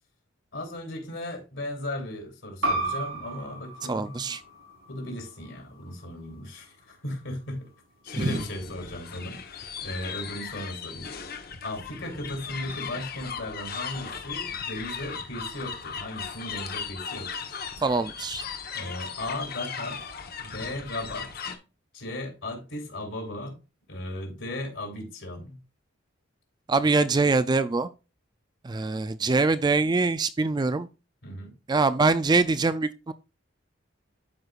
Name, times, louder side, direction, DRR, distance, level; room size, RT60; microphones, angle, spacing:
voice 1, 0.5-4.3 4.9-7.7 8.0-11.1 11.6-17.6 18.7-20.1 20.4-21.3 21.9-23.5 23.9-25.6 31.2-31.5, left 1 dB, 65° left, 3.1 m, -36 dB
sound 1, 2.6-7.8, right 2 dB, 85° right, 3.8 m, -35 dB
voice 2, 3.9-4.4 8.2-8.4 17.8-18.4 26.7-27.9 28.6-30.9 31.7-33.1, right 3 dB, 20° right, 0.3 m, -24 dB
sound 2, 8.1-21.6, left 6 dB, 50° left, 1.1 m, -37 dB
12.5 x 4.8 x 2.4 m
head